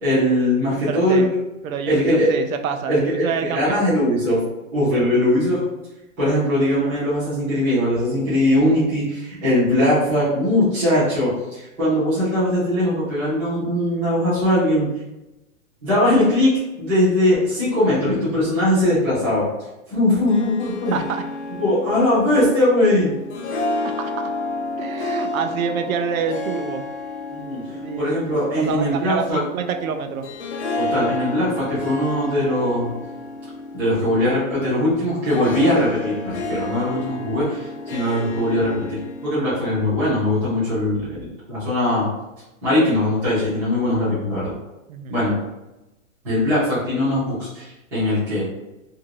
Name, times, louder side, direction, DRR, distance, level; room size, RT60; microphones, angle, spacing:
voice 1, 0.0-1.2 1.9-2.3 2.9-4.4 4.7-5.7 6.2-14.9 15.8-19.5 19.9-21.0 21.6-23.1 27.3-27.6 28.0-29.4 30.7-32.9 33.7-42.1 42.6-44.6 45.1-45.3 46.2-47.7 47.9-48.4, left 1 dB, 5° right, -13 dB, 0.6 m, -20 dB
voice 2, 0.8-1.3 1.6-3.8 4.8-5.1 20.9-21.2 23.8-24.3 24.8-26.9 27.7-28.1 28.5-30.3 44.9-45.1, right 7 dB, 85° right, 7 dB, 0.5 m, -27 dB
Harp, 20.1-39.9, left 2 dB, 55° left, 0.6 m, -31 dB
2.6 x 2.6 x 2.9 m, 0.98 s
hypercardioid pair, 175°, 40 cm